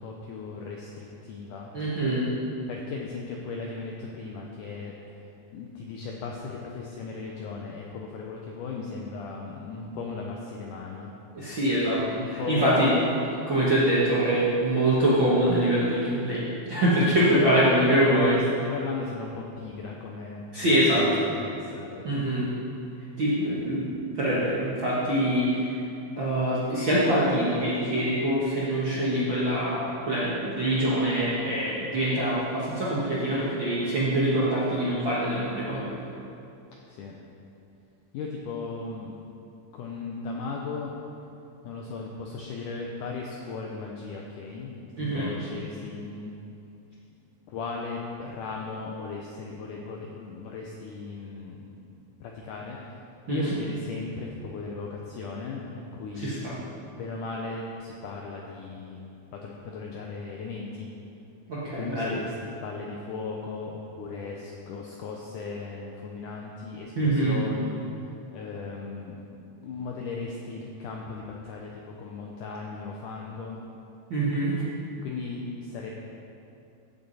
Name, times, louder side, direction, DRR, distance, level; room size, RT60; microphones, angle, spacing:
voice 1, 0.0-1.7 2.7-4.9 5.5-11.1 12.0-13.0 17.0-17.8 18.1-22.3 36.9-37.2 38.1-39.2 39.7-40.9 41.6-46.3 47.5-51.9 52.2-53.0 53.3-56.4 57.0-60.9 61.8-67.8 68.3-69.2 69.6-73.6 75.0-75.9, left 4 dB, 80° left, -1 dB, 1.8 m, -36 dB
voice 2, 1.7-2.3 11.3-12.0 12.3-12.9 13.5-18.4 20.5-21.0 22.0-22.5 23.2-23.9 24.1-25.8 26.2-35.9 45.0-45.3 53.3-53.5 56.1-56.5 61.5-62.2 67.0-67.4 74.1-74.5, right 1 dB, 55° right, -9 dB, 1.3 m, -24 dB
15.0 x 7.5 x 4.1 m, 2.8 s
omnidirectional pair, 4.5 m